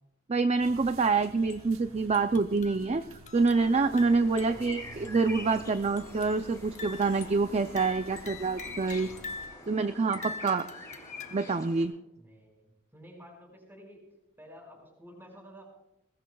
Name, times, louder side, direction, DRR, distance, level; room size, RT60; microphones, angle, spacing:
voice 1, 0.3-3.0 3.3-9.1 9.7-10.7 11.3-11.9, right 4 dB, 30° right, 9 dB, 0.4 m, -26 dB
sound 1, 0.6-9.5, right 2 dB, 75° right, 1.0 m, -50 dB
sound 2, 1.4-1.7 2.1-4.8 5.0-5.1 6.0-6.5 6.8-9.7 10.1-11.6, left 4 dB, 35° left, 0.7 m, -44 dB
sound 3, 3.3-11.8, left 2 dB, 15° left, 7.4 m, -46 dB
voice 2, 4.2-4.7 8.9-9.4 12.2-14.0 14.4-15.7, equal, 10° right, 0 dB, 5.9 m, -52 dB
21.5 x 20.0 x 2.3 m, 0.88 s
head